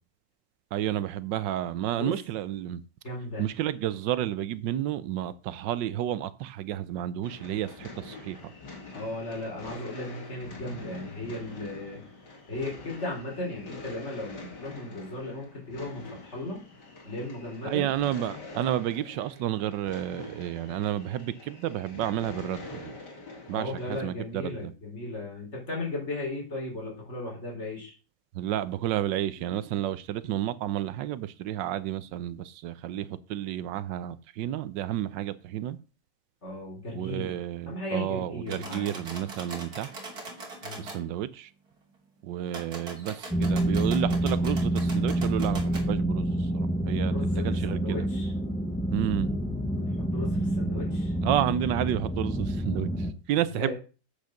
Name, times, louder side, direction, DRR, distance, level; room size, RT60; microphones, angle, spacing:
voice 1, 0.7-2.8 3.4-8.5 17.6-22.9 23.5-24.7 28.3-35.8 36.9-39.9 40.8-41.5 42.2-48.1 48.9-49.4 51.2-53.7, right 12 dB, 85° right, 1.3 m, -31 dB
voice 2, 3.0-3.5 8.9-12.0 12.5-16.6 17.0-17.9 23.5-27.9 36.4-37.3 37.7-39.0 40.6-40.9 47.1-48.3 49.7-51.1 53.5-53.7, left 2 dB, 35° left, 4.7 m, -36 dB
sound 1, 7.2-24.0, left 3 dB, 65° left, 3.1 m, -45 dB
sound 2, 38.5-41.0 42.5-45.9, right 2 dB, 55° right, 3.1 m, -42 dB
sound 3, 43.3-53.1, right 1 dB, 5° left, 0.5 m, -28 dB
8.3 x 6.6 x 6.4 m
omnidirectional pair, 1.9 m